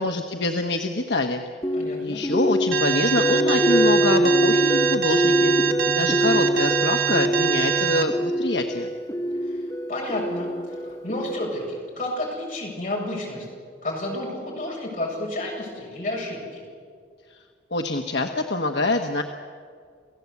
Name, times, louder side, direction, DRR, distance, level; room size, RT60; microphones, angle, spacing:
voice 1, 0.0-1.4 2.0-5.5 5.9-8.9 17.7-19.2, left 2 dB, 70° left, 4 dB, 1.2 m, -25 dB
sound 1, 1.6-11.7, equal, 20° left, 1.6 m, -24 dB
voice 2, 1.7-2.2 9.4-9.6 9.9-13.5 13.8-16.6, left 1 dB, 45° left, -2 dB, 7.5 m, -31 dB
Alarm, 2.7-8.0, right 9 dB, 50° right, 1.5 m, -24 dB
29.0 x 16.0 x 8.4 m, 2.1 s
head